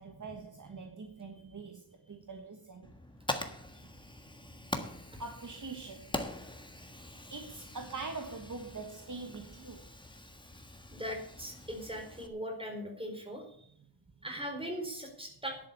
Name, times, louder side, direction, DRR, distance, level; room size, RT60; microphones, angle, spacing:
voice 1, 0.0-2.9 5.2-6.1 7.3-9.9, right 3 dB, 45° right, 1.5 m, -43 dB
Fire, 2.8-12.3, left 1 dB, 10° left, 1.4 m, -43 dB
voice 2, 10.9-13.4 14.2-15.6, equal, 10° right, 4.4 m, -39 dB
11.0 x 8.2 x 8.3 m
wide cardioid pair, 115°, 44 cm